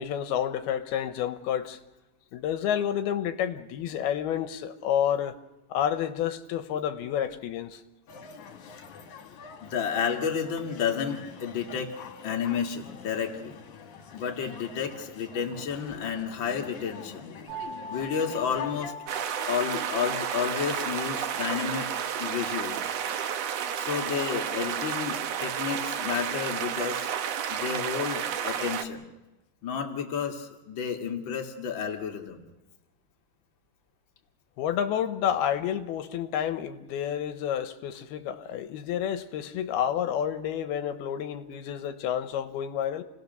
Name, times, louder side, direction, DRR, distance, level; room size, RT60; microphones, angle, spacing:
voice 1, 0.0-1.8 2.3-5.4 5.7-7.8 34.6-43.0, left 9 dB, 80° left, 2.9 m, -29 dB
sound 1, 8.1-18.9, left 6 dB, 55° left, 2.9 m, -45 dB
voice 2, 9.6-11.9 12.2-13.6 14.1-17.4 17.9-18.9 19.5-21.9 22.2-23.0 23.8-27.1 27.5-29.0 29.6-32.4, left 7 dB, 35° left, 2.4 m, -31 dB
sound 2, 17.5-27.3, equal, 55° right, 2.2 m, -45 dB
sound 3, 19.1-28.8, right 8 dB, 75° right, 1.5 m, -31 dB
29.0 x 18.5 x 6.8 m
omnidirectional pair, 4.5 m